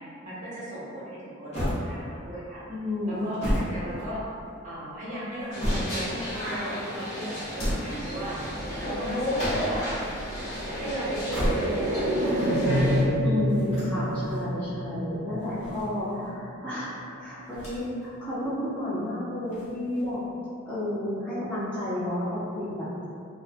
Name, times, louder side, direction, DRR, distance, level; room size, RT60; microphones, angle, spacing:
voice 1, 0.0-2.6 3.0-4.2 4.6-8.4 8.8-9.9 10.8-13.0, equal, 40° right, -10 dB, 0.8 m, -37 dB
sound 1, 1.5-2.3 3.1-4.5 5.2-6.2 7.4-8.0 9.2-9.9 11.1-12.0 13.5-14.4 15.3-16.3 17.5-18.1 18.4-18.5 19.5-20.2, equal, 35° left, 1.0 m, -32 dB
voice 2, 2.7-3.2 13.2-16.9 17.2-20.2 20.7-23.1, left 1 dB, 5° left, -13 dB, 0.5 m, -31 dB
sound 2, 5.5-13.0, equal, 80° left, 1.0 m, -33 dB
sound 3, 7.9-17.6 17.9-18.0, equal, 90° right, 0.4 m, -30 dB
2.6 x 2.2 x 2.4 m, 2.4 s
head